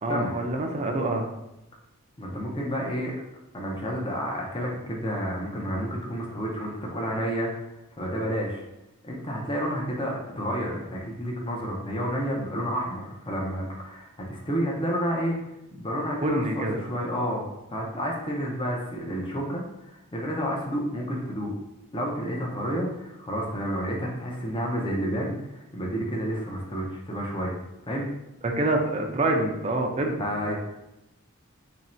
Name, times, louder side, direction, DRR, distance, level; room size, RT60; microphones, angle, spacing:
voice 1, 0.0-1.3 16.2-16.9 28.4-30.5, right 2 dB, 30° right, 2 dB, 0.4 m, -26 dB
voice 2, 2.2-3.1 3.5-7.5 8.0-8.6 9.0-15.4 15.7-21.5 21.9-27.5 27.9-28.1 30.2-30.5, equal, 25° left, -1 dB, 0.6 m, -30 dB
3.1 x 2.6 x 4.3 m, 0.89 s
head